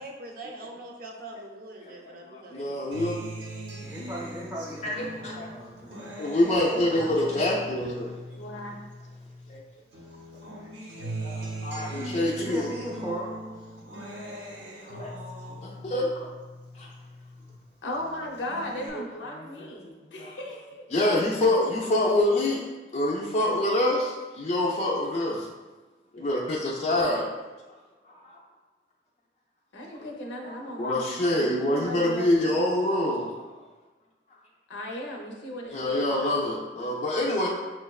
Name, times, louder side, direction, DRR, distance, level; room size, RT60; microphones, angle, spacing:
voice 1, 0.0-2.9 6.5-6.6 7.5-7.6, right 2 dB, 55° right, 1 dB, 0.5 m, -43 dB
voice 2, 2.3-3.2 4.8-5.5 6.2-8.1 9.5-9.6 11.0-12.7 14.9-15.1 15.5-16.3 16.7-16.9 18.9-19.7 20.2-20.3 20.9-22.6 22.9-25.5 26.1-27.3 28.1-28.4 30.3-33.6 35.7-37.5, left 1 dB, 40° left, -4 dB, 0.4 m, -26 dB
Acoustic guitar, 2.9-9.6 9.9-17.5 17.9-18.9, right 1 dB, 90° right, 0.8 m, -40 dB
voice 3, 3.8-6.1 12.3-13.3, equal, 10° right, -4 dB, 0.7 m, -37 dB
voice 4, 6.4-7.5 8.3-8.8 17.8-20.8 29.7-32.6 34.7-36.4, left 1 dB, 90° left, 0 dB, 0.6 m, -37 dB
6.1 x 2.1 x 2.3 m, 1.2 s
head